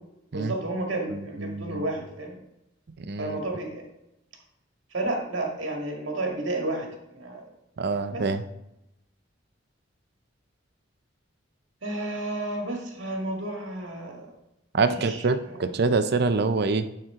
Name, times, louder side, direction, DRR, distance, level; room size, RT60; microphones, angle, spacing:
voice 1, 0.3-2.4 3.2-3.8 4.9-7.4 8.1-8.3 11.8-14.4 14.8-15.7, right 2 dB, 75° right, 1 dB, 1.9 m, -32 dB
voice 2, 1.1-1.8 3.0-3.4 7.8-8.4 14.7-16.9, right 4 dB, 60° right, 11 dB, 0.6 m, -25 dB
11.0 x 4.5 x 3.7 m, 0.87 s
head